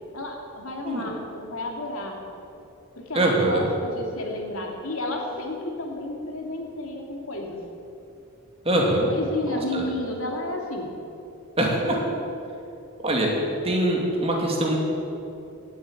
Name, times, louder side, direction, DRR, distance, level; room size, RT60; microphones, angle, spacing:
voice 1, 0.1-2.2 2.9-7.6 9.1-10.9, left 2 dB, 75° left, 1 dB, 2.7 m, -32 dB
voice 2, 3.1-3.7 8.6-9.1 9.5-9.8 11.6-12.0 13.0-13.3 13.6-14.8, right 1 dB, 25° right, -1 dB, 2.7 m, -23 dB
16.5 x 8.6 x 9.2 m, 2.7 s
head